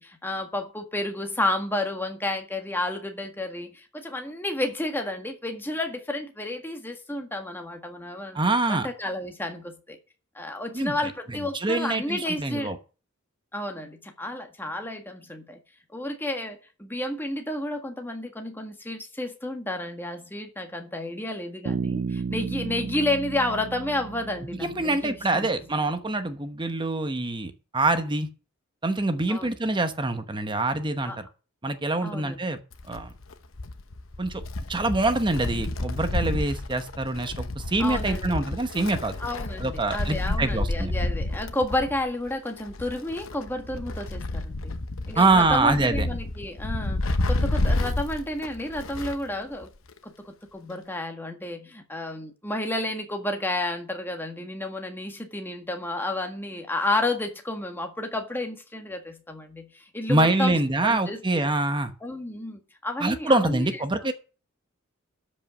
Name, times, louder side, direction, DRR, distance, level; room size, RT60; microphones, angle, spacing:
voice 1, 0.0-8.4 8.7-10.0 10.3-12.7 13.5-15.6 15.9-25.5 29.3-29.5 31.0-31.2 32.0-32.4 37.8-38.4 39.2-44.8 45.1-49.7 50.0-60.5 60.8-61.5 62.0-63.7, left 1 dB, 10° left, 1.6 m, -31 dB
voice 2, 8.3-8.9 10.7-11.0 11.3-12.8 24.6-28.3 28.8-31.3 31.6-32.6 32.9-33.1 34.2-34.4 34.7-39.2 39.6-40.9 45.2-46.1 60.1-61.9 63.0-64.1, right 2 dB, 25° right, 1.0 m, -25 dB
Bass guitar, 21.7-25.3, right 5 dB, 50° right, 0.4 m, -33 dB
Wind, 32.7-49.3 49.6-49.7 50.7-50.8, left 2 dB, 70° left, 1.0 m, -30 dB
12.5 x 5.4 x 6.3 m
head